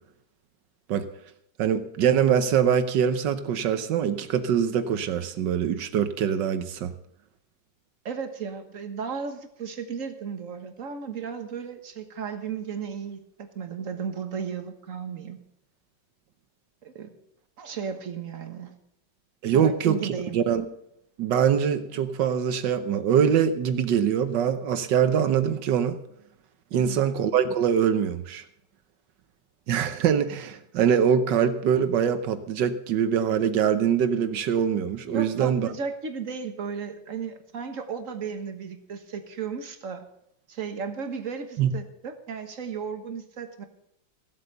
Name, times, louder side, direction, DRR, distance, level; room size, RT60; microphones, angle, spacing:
voice 1, 1.6-6.9 19.4-20.6 21.2-26.0 26.7-28.4 29.7-35.7 41.6-41.7, right 8 dB, 75° right, 11 dB, 1.5 m, -23 dB
voice 2, 8.0-15.4 16.8-17.1 17.6-18.7 19.5-20.4 26.7-27.0 35.1-40.0 40.5-43.6, right 6 dB, 45° right, 7 dB, 1.6 m, -35 dB
16.0 x 8.1 x 6.6 m, 0.75 s
omnidirectional pair, 2.0 m